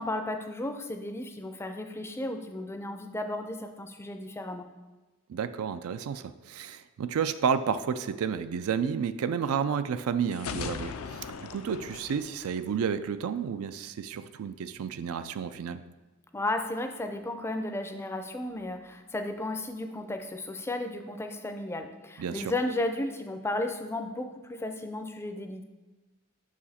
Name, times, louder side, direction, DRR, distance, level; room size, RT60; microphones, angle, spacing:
voice 1, 0.0-4.7 16.3-25.6, left 1 dB, 10° left, 7 dB, 0.4 m, -34 dB
voice 2, 5.3-15.8 22.2-22.5, right 7 dB, 85° right, 12 dB, 0.3 m, -31 dB
sound 1, 10.3-13.2, left 6 dB, 85° left, 0.4 m, -39 dB
5.7 x 4.9 x 4.2 m, 1.2 s
head